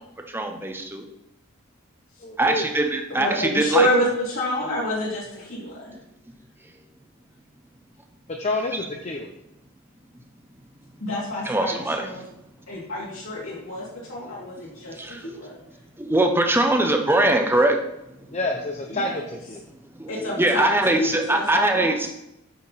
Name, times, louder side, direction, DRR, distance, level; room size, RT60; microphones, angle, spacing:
voice 1, 0.3-1.0 2.4-3.9 11.4-12.1 15.0-15.3 16.0-17.8 20.0-22.1, right 2 dB, 10° right, 4 dB, 0.8 m, -22 dB
voice 2, 2.2-2.7 8.3-9.3 18.3-19.6, left 2 dB, 30° left, 2 dB, 0.6 m, -28 dB
voice 3, 3.1-6.0 11.0-12.2 12.7-15.6 18.9-19.2 20.1-20.7 21.0-21.9, equal, 70° left, -6 dB, 2.4 m, -28 dB
8.4 x 5.8 x 4.1 m, 0.87 s
head